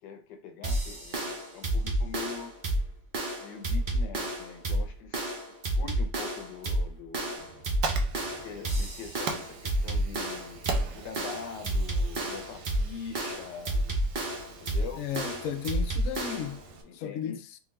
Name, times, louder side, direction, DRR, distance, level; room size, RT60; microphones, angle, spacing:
voice 1, 0.0-2.5 3.4-5.2 5.8-7.4 8.3-14.0 14.5-15.1 16.7-17.4, left 6 dB, 90° left, 1.4 m, -43 dB
sound 1, 0.6-16.6, right 1 dB, 50° right, 0.6 m, -30 dB
Fire, 7.4-16.8, right 5 dB, 85° right, 1.3 m, -41 dB
voice 2, 15.0-16.6 16.9-17.6, left 9 dB, 70° left, 0.8 m, -34 dB
3.7 x 2.9 x 3.1 m
omnidirectional pair, 1.8 m